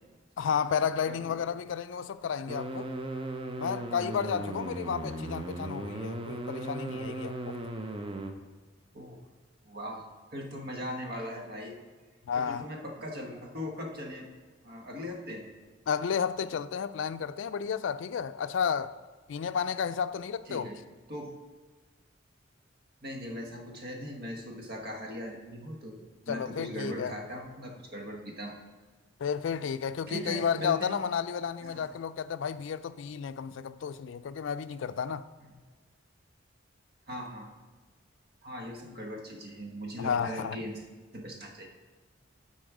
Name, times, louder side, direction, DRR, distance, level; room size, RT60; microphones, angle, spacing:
voice 1, 0.4-2.9 3.6-7.6 12.3-12.7 15.9-18.9 19.3-20.7 26.3-27.1 29.2-35.2 40.0-40.6, left 7 dB, 70° left, 0.4 m, -32 dB
voice 2, 1.1-1.4 8.9-9.2 9.6-10.1 10.3-11.8 12.4-14.3 14.6-15.5 20.5-20.8 21.1-21.3 23.0-28.6 30.1-31.1 31.6-31.9 35.4-35.5 37.1-37.5 38.4-40.8 41.1-41.7, equal, 55° right, 1.3 m, -39 dB
sound 1, 2.5-8.3, right 2 dB, 30° right, 0.6 m, -37 dB
11.5 x 4.2 x 4.8 m
head